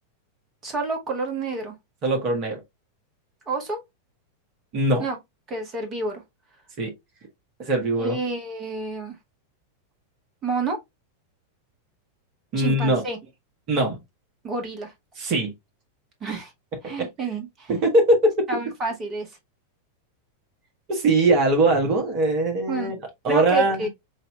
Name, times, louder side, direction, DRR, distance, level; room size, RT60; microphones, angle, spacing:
voice 1, 0.6-1.8 3.5-3.8 5.0-5.2 5.5-6.2 8.0-9.2 10.4-10.8 12.6-13.2 14.4-14.9 16.2-16.5 16.8-17.7 18.5-19.4 22.7-22.9 23.3-23.9, right 3 dB, 25° right, 1.6 m, -29 dB
voice 2, 2.0-2.6 4.7-5.0 6.8-6.9 7.6-8.2 12.5-13.0 13.7-14.0 15.2-15.5 16.8-17.1 17.8-18.3 20.9-22.9 23.2-23.9, right 2 dB, 40° right, 1.4 m, -21 dB
6.4 x 2.8 x 2.3 m
figure-of-eight pair, 90°, 0 cm